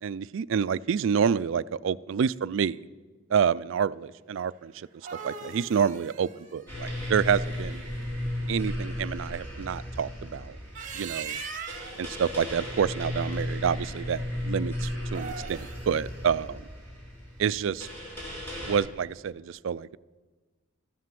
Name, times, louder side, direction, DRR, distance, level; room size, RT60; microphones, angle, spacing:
voice 1, 0.0-2.8 3.3-4.9 5.2-7.8 8.5-10.6 10.9-11.3 12.0-16.6 17.4-17.9 18.6-20.0, right 7 dB, 65° right, 19 dB, 0.3 m, -28 dB
sound 1, 4.7-7.8 10.5-12.0 15.0-15.9, right 5 dB, 40° right, 1.4 m, -40 dB
sound 2, 6.7-18.8, left 1 dB, 10° left, 4.5 m, -35 dB
13.5 x 9.4 x 7.5 m, 1.3 s
head